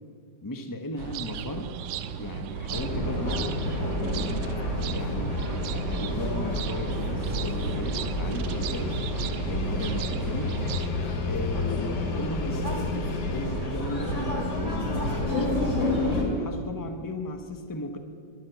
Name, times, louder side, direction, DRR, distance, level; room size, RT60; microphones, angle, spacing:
voice 1, 0.4-1.7 2.2-3.6 4.0-5.4 5.7-9.0 9.4-10.7 11.3-15.9 16.2-18.0, left 1 dB, 25° left, 6 dB, 0.4 m, -36 dB
sound 1, 1.0-10.9, right 8 dB, 80° right, 1.3 m, -36 dB
sound 2, 2.7-16.2, left 1 dB, 40° left, 2.5 m, -29 dB
sound 3, 8.5-13.5, left 9 dB, 70° left, 1.2 m, -35 dB
12.0 x 11.0 x 7.9 m, 2.2 s
omnidirectional pair, 2.0 m